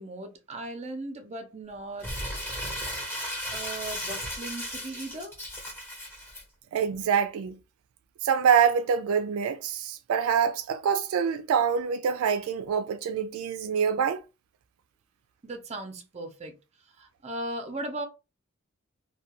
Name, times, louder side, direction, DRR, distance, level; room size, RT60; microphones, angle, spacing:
voice 1, 0.0-2.1 3.5-5.4 15.4-16.6 16.9-18.1, right 2 dB, 30° right, 0.6 m, -37 dB
Crumpling crinkling, 2.0-6.4, equal, 10° left, 0.9 m, -35 dB
voice 2, 6.7-7.6 8.2-14.2, right 7 dB, 80° right, 0.3 m, -25 dB
2.3 x 2.2 x 2.8 m
head